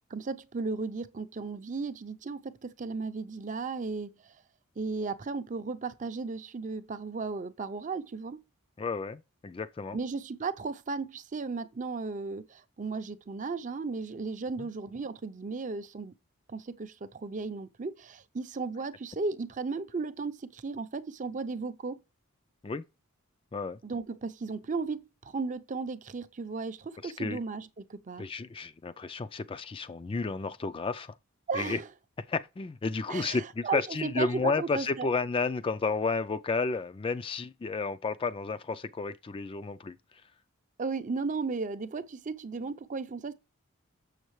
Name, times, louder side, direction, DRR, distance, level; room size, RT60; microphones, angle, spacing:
voice 1, 0.1-4.3 4.8-8.4 9.9-16.1 16.5-22.0 23.8-28.3 31.5-31.9 33.1-35.1 40.8-43.3, right 4 dB, 35° right, 0.5 m, -35 dB
voice 2, 8.8-10.0 14.6-14.7 22.6-22.8 23.5-23.8 27.0-27.4 28.2-31.1 31.5-31.8 32.3-40.0, left 4 dB, 25° left, 0.3 m, -32 dB
7.1 x 6.6 x 3.1 m
head